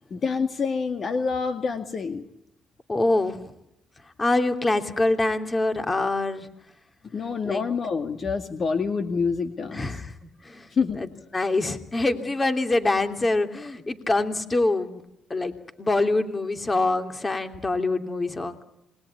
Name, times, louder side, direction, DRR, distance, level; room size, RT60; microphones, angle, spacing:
voice 1, 0.1-2.3 7.1-9.9 10.7-11.0, left 5 dB, 50° left, 7 dB, 2.1 m, -27 dB
voice 2, 2.9-3.4 4.2-6.5 7.4-7.6 9.7-10.2 10.4-11.1 11.3-15.0 15.3-15.5 15.8-18.6, left 2 dB, 25° left, 7 dB, 2.9 m, -25 dB
27.5 x 21.0 x 9.7 m, 0.81 s
cardioid pair, 90°, 0 cm